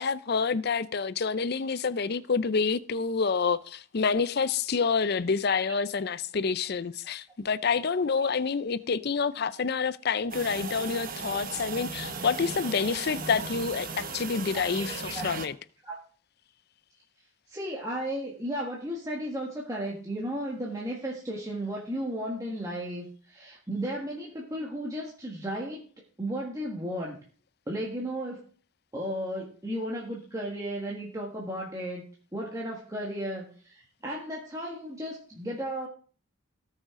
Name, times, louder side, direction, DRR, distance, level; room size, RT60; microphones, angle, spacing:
voice 1, 0.0-15.6, left 5 dB, 50° left, 0.5 m, -28 dB
sound 1, 10.3-15.5, right 4 dB, 40° right, 1.0 m, -37 dB
voice 2, 14.5-15.3 15.8-16.0 17.5-25.8 26.2-27.2 27.7-28.4 28.9-32.0 32.3-35.9, equal, 15° right, 1.6 m, -34 dB
18.0 x 6.4 x 3.7 m
head